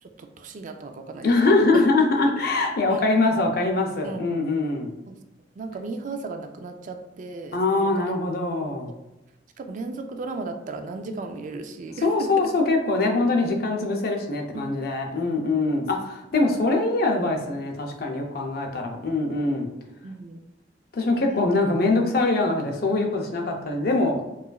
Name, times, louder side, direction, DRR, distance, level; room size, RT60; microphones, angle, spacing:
voice 1, 0.0-1.3 1.6-1.8 2.9-3.0 4.0-4.3 5.1-5.2 5.6-8.2 8.9-9.0 9.6-12.3 14.5-14.6 20.0-20.4 21.1-21.4, right 3 dB, 45° right, 6 dB, 0.3 m, -36 dB
voice 2, 1.2-4.9 7.5-8.9 12.0-19.7 20.9-24.2, left 2 dB, 60° left, 2 dB, 0.5 m, -23 dB
4.7 x 2.4 x 2.3 m, 0.92 s
head